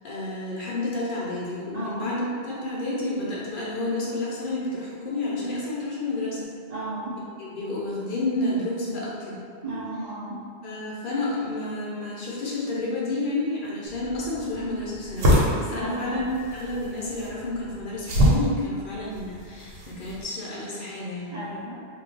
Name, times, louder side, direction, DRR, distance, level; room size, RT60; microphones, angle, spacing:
voice 1, 0.0-6.5 7.4-9.4 10.6-21.4, left 2 dB, 50° left, -6 dB, 0.7 m, -30 dB
voice 2, 1.7-2.1 6.7-7.2 9.6-10.4 15.7-16.2 21.3-21.8, right 1 dB, 55° right, -11 dB, 0.4 m, -33 dB
sound 1, 13.9-20.2, equal, 75° right, 1.0 m, -26 dB
2.2 x 2.2 x 3.8 m, 2.2 s
omnidirectional pair, 1.3 m